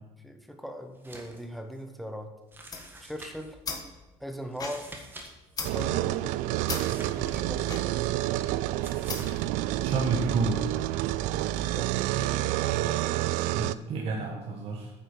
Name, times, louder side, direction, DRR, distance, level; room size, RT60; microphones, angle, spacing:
voice 1, 0.2-2.3 3.0-3.6 4.2-4.9 5.7-6.4 7.1-7.8 11.7-12.3 12.6-13.1, equal, ahead, 5 dB, 1.1 m, -40 dB
sound 1, 0.9-1.4 1.7-1.8 2.5-3.5 4.5-5.3 5.5-5.6 6.7-7.8 8.8-9.4, right 2 dB, 15° right, 1.7 m, -47 dB
sound 2, 2.5-9.5, left 4 dB, 30° left, 1.5 m, -40 dB
sound 3, 5.6-13.7, right 15 dB, 90° right, 0.4 m, -29 dB
voice 2, 9.8-10.7 13.5-14.9, right 4 dB, 55° right, 0 dB, 1.5 m, -29 dB
9.4 x 7.5 x 5.6 m, 1.1 s
cardioid pair, 130°, 12 cm